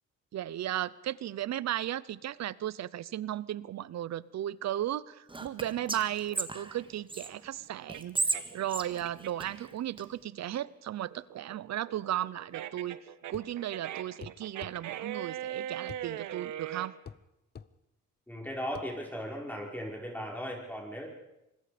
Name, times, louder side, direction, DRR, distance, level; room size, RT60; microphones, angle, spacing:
voice 1, 0.3-13.0 13.3-16.9, right 12 dB, 60° right, 20 dB, 0.8 m, -35 dB
Whispering, 5.3-7.3 7.9-10.0, right 3 dB, 15° right, 1.7 m, -35 dB
sound 1, 6.3-9.7 10.1-16.9, right 11 dB, 75° right, 1.3 m, -40 dB
sound 2, 13.3-13.6 14.2-14.8 15.9-16.1 17.1-17.2 17.6-17.7 18.8-18.9, left 6 dB, 35° left, 0.8 m, -45 dB
voice 2, 18.3-21.1, equal, 5° left, -1 dB, 5.4 m, -37 dB
26.0 x 21.0 x 5.2 m, 0.90 s
cardioid pair, 90°, 30 cm